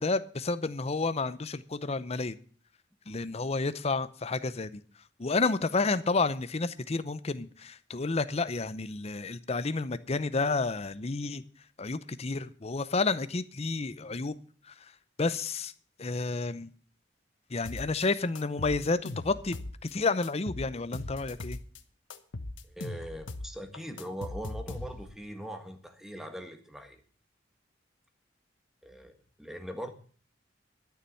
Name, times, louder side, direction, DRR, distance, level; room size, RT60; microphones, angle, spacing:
voice 1, 0.0-2.4 3.1-4.8 5.2-11.4 11.8-14.4 14.6-14.9 15.2-15.7 16.0-16.7 17.5-21.6, left 3 dB, 35° left, 14 dB, 0.7 m, -30 dB
sound 1, 17.7-18.1 18.4-19.9 20.2-21.8 22.1-25.2, left 2 dB, 85° left, 1.2 m, -39 dB
voice 2, 22.6-27.0 28.8-29.9, right 1 dB, ahead, 6 dB, 1.5 m, -41 dB
12.5 x 7.0 x 8.4 m, 0.43 s
head